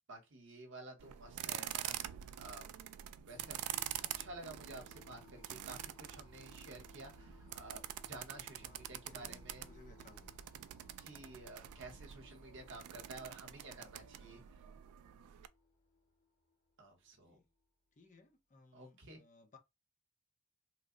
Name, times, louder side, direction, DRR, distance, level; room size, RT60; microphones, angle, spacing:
voice 1, 0.1-2.7 3.3-3.8 4.2-9.7 11.0-14.6 16.8-17.4 18.7-19.2, right 2 dB, 55° right, 0.9 m, -52 dB
sound 1, 1.0-15.5, right 12 dB, 90° right, 0.3 m, -46 dB
sound 2, 3.3-17.5, left 1 dB, 75° left, 1.5 m, -62 dB
voice 2, 8.5-10.4 11.8-12.1 17.2-17.5 18.0-19.6, left 3 dB, 35° left, 0.5 m, -63 dB
3.0 x 2.0 x 3.7 m
head